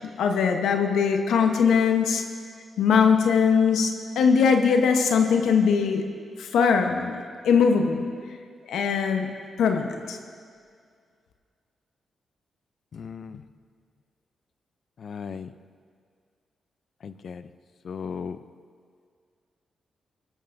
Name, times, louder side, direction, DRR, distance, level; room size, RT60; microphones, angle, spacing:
voice 1, 0.2-2.2 2.8-6.0 6.4-8.0 8.7-9.3 9.6-10.2, left 6 dB, 85° left, 4 dB, 0.9 m, -21 dB
voice 2, 12.9-13.4 15.0-15.5 17.0-17.5 17.8-18.4, left 6 dB, 65° left, 13 dB, 0.5 m, -36 dB
17.5 x 13.0 x 2.6 m, 2.1 s
cardioid pair, 60°, 0 cm